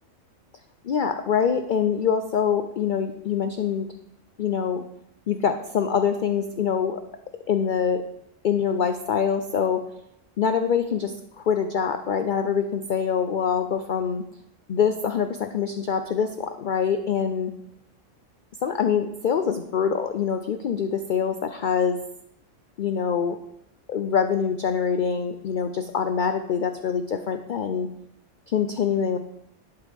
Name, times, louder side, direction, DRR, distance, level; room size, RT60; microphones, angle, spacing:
voice 1, 0.8-3.9 4.4-4.8 5.3-7.0 7.5-8.0 8.4-9.8 10.4-14.2 14.7-17.5 18.6-22.0 22.8-23.4 23.9-27.9 28.5-29.2, left 7 dB, 55° left, 8 dB, 0.5 m, -24 dB
11.5 x 8.2 x 3.4 m, 0.79 s
omnidirectional pair, 1.3 m